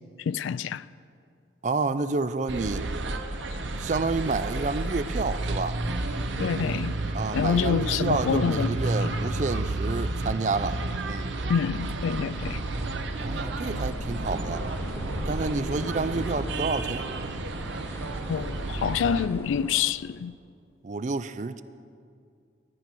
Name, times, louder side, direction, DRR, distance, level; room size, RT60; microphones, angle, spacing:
voice 1, 0.3-0.9 6.4-7.0 7.3-8.7 11.5-12.6 18.3-20.3, left 7 dB, 90° left, 0.3 m, -27 dB
voice 2, 1.6-2.9 3.8-5.8 7.1-10.8 11.0-11.3 13.2-14.6 15.3-17.1 20.8-21.6, right 3 dB, 40° right, 0.4 m, -29 dB
sound 1, 2.5-19.3, right 2 dB, 75° right, 0.8 m, -31 dB
sound 2, 12.1-19.9, equal, 15° left, 0.8 m, -41 dB
14.0 x 8.9 x 6.0 m
head